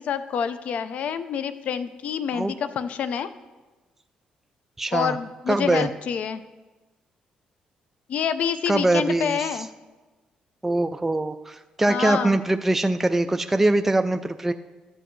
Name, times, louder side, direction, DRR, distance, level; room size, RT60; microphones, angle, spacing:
voice 1, 0.0-3.3 4.9-6.4 8.1-9.7 11.9-12.4, left 7 dB, 65° left, 13 dB, 0.5 m, -27 dB
voice 2, 4.8-5.1 5.5-5.9 8.7-9.4 10.6-14.5, right 2 dB, 10° right, 8 dB, 0.3 m, -22 dB
12.5 x 7.9 x 3.1 m, 1.2 s
cardioid pair, 95°, 2 cm